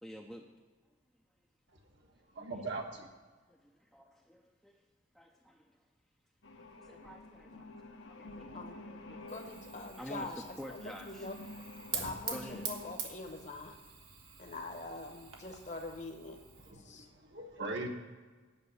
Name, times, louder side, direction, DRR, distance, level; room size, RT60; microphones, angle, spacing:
voice 1, 0.0-0.5 3.5-4.8 5.1-5.8 6.8-7.7 8.2-9.2 10.0-11.3 12.3-12.7, equal, ahead, 0 dB, 0.5 m, -49 dB
voice 2, 2.3-3.1 16.6-17.9, right 3 dB, 60° right, 2 dB, 1.3 m, -40 dB
sound 1, 6.4-13.0, left 2 dB, 75° left, 1.0 m, -50 dB
voice 3, 8.5-8.9 9.3-11.4 11.9-13.8 14.4-16.4 16.8-17.1, left 2 dB, 35° left, 5 dB, 1.0 m, -44 dB
Fire, 9.3-16.7, right 6 dB, 90° right, 1.5 m, -45 dB
9.2 x 6.0 x 8.1 m, 1.4 s
head